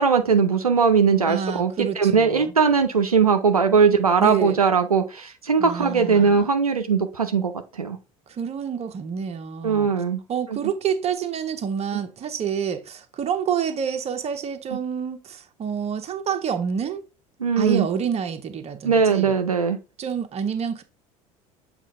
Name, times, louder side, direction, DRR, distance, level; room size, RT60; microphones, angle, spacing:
voice 1, 0.0-8.0 9.6-10.2 17.4-17.9 18.8-19.8, right 5 dB, 90° right, 0.6 m, -20 dB
voice 2, 1.3-2.5 4.2-4.6 5.6-6.5 8.3-9.9 10.3-17.1 17.6-19.3 20.0-20.8, right 7 dB, 35° right, 1.1 m, -28 dB
7.2 x 2.5 x 5.3 m
figure-of-eight pair, 65°, 18 cm